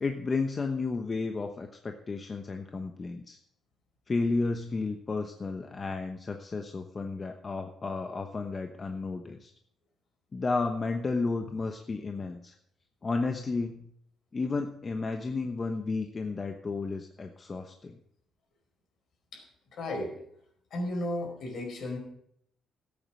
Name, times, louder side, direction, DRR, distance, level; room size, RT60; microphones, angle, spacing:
voice 1, 0.0-3.4 4.1-9.5 10.3-12.5 13.0-13.9 14.3-17.9, left 3 dB, 35° left, 5 dB, 1.0 m, -32 dB
voice 2, 19.7-20.2 20.7-22.0, left 1 dB, 65° left, 2 dB, 5.0 m, -34 dB
14.0 x 8.7 x 6.4 m, 0.71 s
cardioid pair, 90°, 0 cm